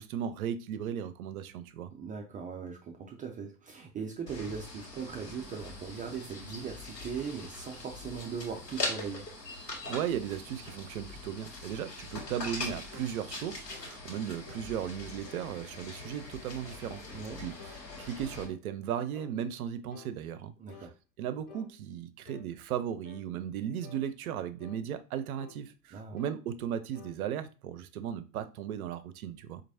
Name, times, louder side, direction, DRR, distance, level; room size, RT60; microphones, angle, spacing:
voice 1, 0.0-1.9 9.9-17.0 17.4-17.5 18.0-20.5 21.2-29.6, right 9 dB, 65° right, 0.6 m, -36 dB
voice 2, 2.0-9.3 17.1-17.4 20.6-20.9 25.9-26.2, right 6 dB, 20° right, 0.4 m, -39 dB
sound 1, 4.3-18.5, left 2 dB, 85° left, 1.1 m, -42 dB
sound 2, 12.1-12.4 12.9-13.2 13.7-13.9 14.5-14.7 15.2-15.5 16.0-16.3 16.8-17.1 17.6-18.6 19.1-19.4 19.9-20.2 20.7-20.9 21.5-21.7 22.3-22.5 23.0-23.3 23.8-24.1 24.6-24.8 25.4-25.6 26.2-26.4 26.9-27.2, left 7 dB, 60° left, 0.9 m, -53 dB
4.5 x 2.5 x 2.7 m
figure-of-eight pair, 80°, 48 cm